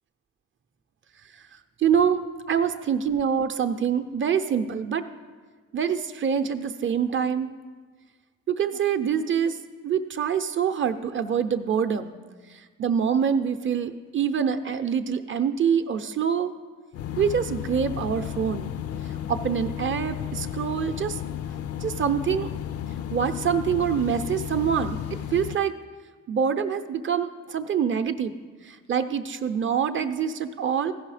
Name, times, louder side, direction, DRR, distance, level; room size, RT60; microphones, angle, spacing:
voice 1, 1.8-5.1 5.7-7.5 8.5-9.6 9.8-12.2 12.8-16.5 17.2-18.7 19.3-21.2 21.8-22.5 23.1-25.0 25.3-25.7 26.3-28.3 28.6-30.9, right 7 dB, 40° right, 9 dB, 0.6 m, -25 dB
sound 1, 16.9-25.5, left 10 dB, 55° left, 0.4 m, -33 dB
15.5 x 5.5 x 4.9 m, 1.4 s
cardioid pair, 90°, 30 cm